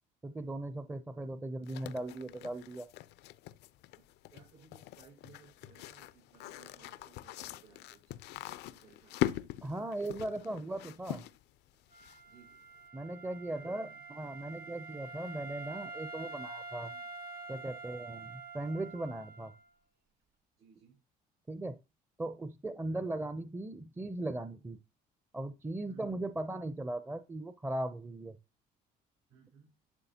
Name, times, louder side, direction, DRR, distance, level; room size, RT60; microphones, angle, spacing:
voice 1, 0.2-2.9 9.6-11.2 12.9-16.9 17.5-19.5 21.5-21.8 22.2-24.8 25.3-28.4, right 1 dB, 10° right, 11 dB, 0.5 m, -38 dB
sound 1, 1.7-12.5, left 14 dB, 80° left, 0.4 m, -42 dB
voice 2, 3.9-8.1 8.7-9.2 12.2-12.6 13.5-14.0 16.9-17.0 20.6-21.0 22.8-23.1 25.8-26.2 29.3-29.8, right 6 dB, 85° right, -7 dB, 5.0 m, -61 dB
Wind instrument woodwind instrument, 11.9-19.7, right 3 dB, 60° right, 1.7 m, -47 dB
11.5 x 6.5 x 2.8 m, 0.28 s
cardioid pair, 110°, 17 cm